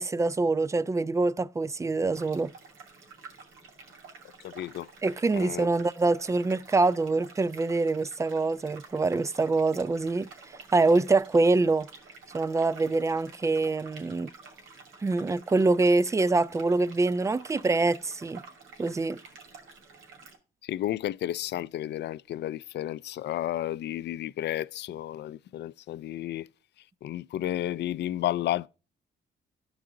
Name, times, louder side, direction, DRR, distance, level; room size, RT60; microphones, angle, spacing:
voice 1, 0.0-2.5 5.0-11.9 12.3-14.3 15.0-18.4 18.8-19.2, right 3 dB, 15° right, 0.3 m, -25 dB
sound 1, 2.1-20.4, right 4 dB, 85° right, 2.5 m, -50 dB
voice 2, 4.4-4.9 5.3-5.7 20.6-26.5 27.0-28.7, left 13 dB, 60° left, 0.4 m, -32 dB
13.5 x 4.8 x 3.8 m
cardioid pair, 90°, 20 cm